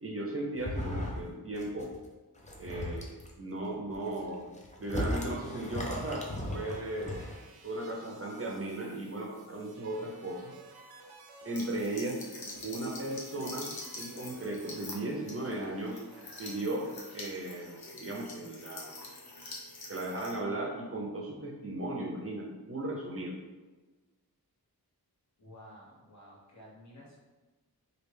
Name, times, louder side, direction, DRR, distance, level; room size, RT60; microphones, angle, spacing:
voice 1, 0.0-1.9 2.6-4.5 4.8-7.2 7.6-10.5 11.4-12.2 12.6-16.0 16.4-18.9 19.9-23.4, right 1 dB, 35° right, -1 dB, 0.6 m, -36 dB
sound 1, 0.6-1.3 1.6-2.0 2.4-3.3 3.9-7.4, left 1 dB, 20° left, 0.6 m, -37 dB
sound 2, 4.9-16.6, right 3 dB, 80° right, 0.6 m, -54 dB
sound 3, 11.5-20.4, left 2 dB, 70° left, 0.7 m, -45 dB
voice 2, 25.4-27.2, equal, 45° left, -6 dB, 1.2 m, -52 dB
3.1 x 2.5 x 3.3 m, 1.2 s
wide cardioid pair, 65°, 38 cm